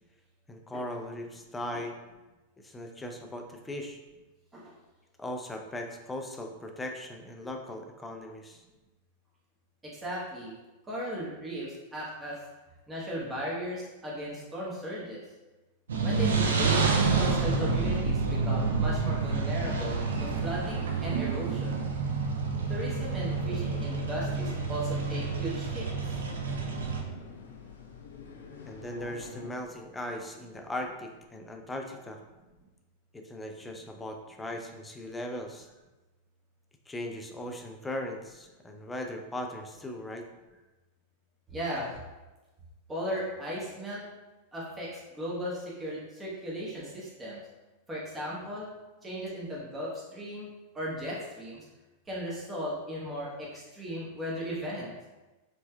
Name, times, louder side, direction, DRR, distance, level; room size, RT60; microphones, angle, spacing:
voice 1, 0.5-2.0 2.6-4.0 5.2-8.6 28.6-32.2 33.1-35.7 36.9-40.3, left 1 dB, 10° left, 3 dB, 0.4 m, -38 dB
voice 2, 9.8-10.5 10.8-12.4 12.9-15.2 16.0-21.8 22.7-25.9 41.5-42.0 42.9-44.0 44.5-47.4 47.9-48.7 49.0-50.5 50.7-51.6 52.1-54.9, equal, 15° right, -6 dB, 1.0 m, -36 dB
sound 1, 15.9-27.0, right 4 dB, 65° right, 0.4 m, -28 dB
sound 2, 22.6-29.5, left 5 dB, 70° left, 0.6 m, -45 dB
4.3 x 3.2 x 2.2 m, 1.1 s
figure-of-eight pair, 90°, 0 cm